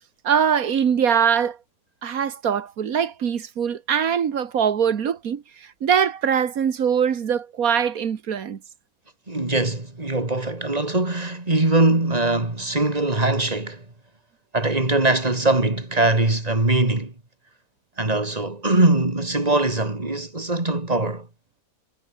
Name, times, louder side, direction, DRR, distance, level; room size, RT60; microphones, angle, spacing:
voice 1, 0.2-1.6 2.0-8.6, right 7 dB, 90° right, 1.8 m, -22 dB
voice 2, 9.3-13.8 14.5-17.1 18.0-21.3, right 2 dB, 25° right, 3.3 m, -21 dB
omnidirectional pair, 1.5 m